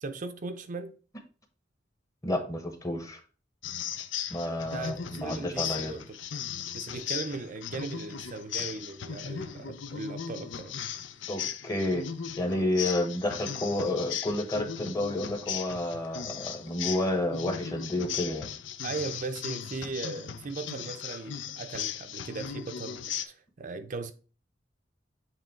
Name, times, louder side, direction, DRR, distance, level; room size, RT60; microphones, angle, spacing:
voice 1, 0.0-1.0 4.6-6.2 6.7-10.7 18.8-24.1, right 3 dB, 45° right, 0.5 m, -38 dB
voice 2, 2.2-3.2 4.3-6.0 11.3-12.1 12.4-18.5, left 1 dB, 20° left, 1.0 m, -30 dB
sound 1, 3.6-23.2, left 8 dB, 85° left, 0.6 m, -37 dB
7.5 x 3.1 x 4.4 m
head